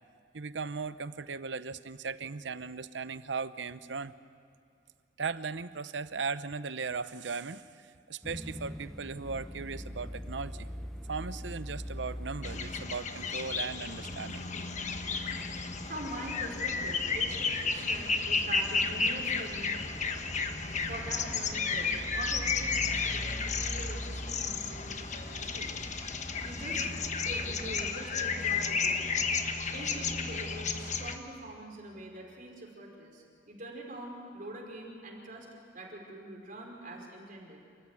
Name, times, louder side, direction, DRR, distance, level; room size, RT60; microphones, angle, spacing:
voice 1, 0.3-4.1 5.2-7.6 8.1-10.7 11.1-14.4, right 4 dB, 75° right, 14 dB, 0.8 m, -37 dB
sound 1, 8.2-27.9, equal, 5° left, 0.7 m, -43 dB
sound 2, 12.4-31.2, left 5 dB, 40° left, 1.3 m, -33 dB
voice 2, 15.8-19.8 20.9-25.8 26.4-26.8 27.2-29.1 29.7-35.5 35.7-37.6, right 1 dB, 50° right, 0 dB, 5.0 m, -44 dB
29.0 x 14.5 x 9.8 m, 2.6 s
head